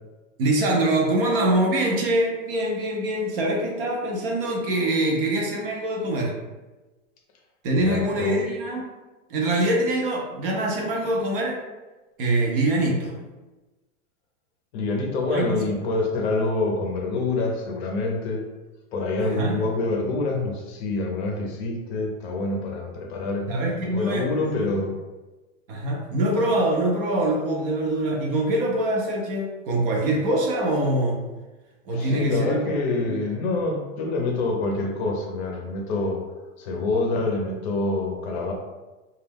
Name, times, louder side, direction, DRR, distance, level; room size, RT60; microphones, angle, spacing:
voice 1, 0.4-6.3 7.6-8.9 9.3-11.6 12.2-13.2 15.3-15.5 19.3-19.6 23.5-24.7 25.7-31.2 31.9-32.6 33.0-33.2, right 1 dB, 45° right, -1 dB, 0.5 m, -24 dB
voice 2, 7.8-8.4 14.7-18.4 18.9-23.5 23.9-24.9 31.9-36.2 36.6-38.5, left 2 dB, 50° left, 1 dB, 0.6 m, -26 dB
2.3 x 2.0 x 3.3 m, 1.2 s
supercardioid pair, 155°, 41 cm